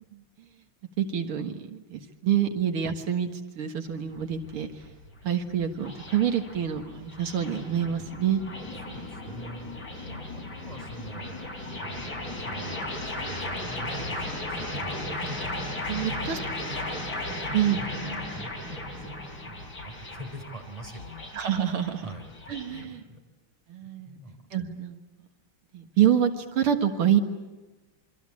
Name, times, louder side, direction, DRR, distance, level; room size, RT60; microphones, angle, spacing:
voice 1, 1.0-4.7 5.2-8.4 15.9-16.4 17.5-17.8 21.3-22.1 22.5-23.0 23.7-24.2 24.5-25.0 25.7-27.2, right 9 dB, 85° right, 6 dB, 2.5 m, -26 dB
sound 1, 3.9-22.8, left 1 dB, 50° left, 6.2 m, -36 dB
voice 2, 8.8-11.5 11.8-16.5 17.8-19.1 19.4-21.3 22.0-23.2 23.8-24.4, right 1 dB, 15° right, 4 dB, 4.4 m, -44 dB
27.5 x 24.5 x 8.6 m, 1.1 s
omnidirectional pair, 2.3 m